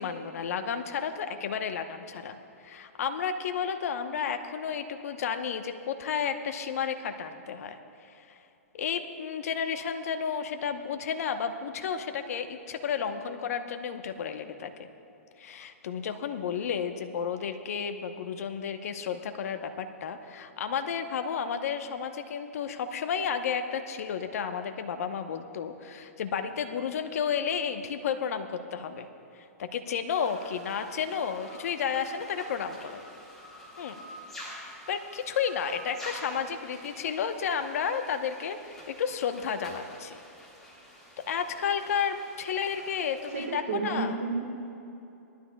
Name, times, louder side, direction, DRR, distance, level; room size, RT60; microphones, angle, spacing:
voice 1, 0.0-2.4 2.6-7.8 8.2-8.4 8.7-14.7 15.4-29.1 29.6-33.0 33.8-34.0 34.4-40.2 41.3-44.2, left 7 dB, 70° left, 6 dB, 1.0 m, -32 dB
sound 1, 30.1-43.5, equal, 5° left, 3.3 m, -48 dB
voice 2, 43.3-44.3, right 4 dB, 75° right, -1 dB, 1.8 m, -31 dB
21.5 x 12.5 x 2.4 m, 2.8 s
hypercardioid pair, 135°, 8 cm